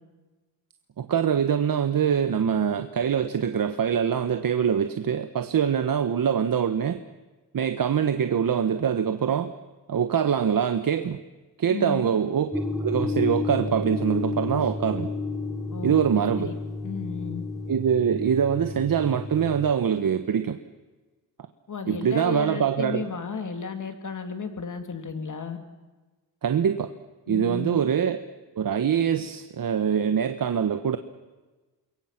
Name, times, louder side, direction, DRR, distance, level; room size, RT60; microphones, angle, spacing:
voice 1, 1.0-7.0 7.5-9.5 9.9-11.2 11.6-12.5 12.8-15.1 15.8-16.5 17.7-20.6 21.9-23.0 26.4-26.9 27.3-28.2 28.5-31.0, right 8 dB, 50° right, 9 dB, 1.2 m, -24 dB
voice 2, 11.7-12.1 15.7-16.5 16.8-17.4 21.7-25.6 27.3-27.8, left 5 dB, 45° left, 7 dB, 3.1 m, -33 dB
sound 1, 12.5-19.7, left 3 dB, ahead, 1.5 m, -31 dB
28.0 x 22.5 x 6.0 m, 1.2 s
cardioid pair, 90°, 44 cm